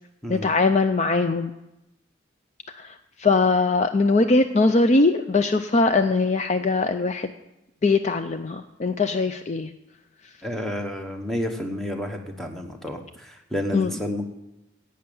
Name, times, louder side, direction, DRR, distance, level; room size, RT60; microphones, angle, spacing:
voice 1, 0.3-1.5 3.2-7.3 7.8-9.7 13.7-13.9, left 3 dB, 35° left, 9 dB, 0.4 m, -21 dB
voice 2, 10.4-13.0 13.5-14.3, left 1 dB, ahead, 3 dB, 1.1 m, -30 dB
11.5 x 8.7 x 7.1 m, 0.92 s
head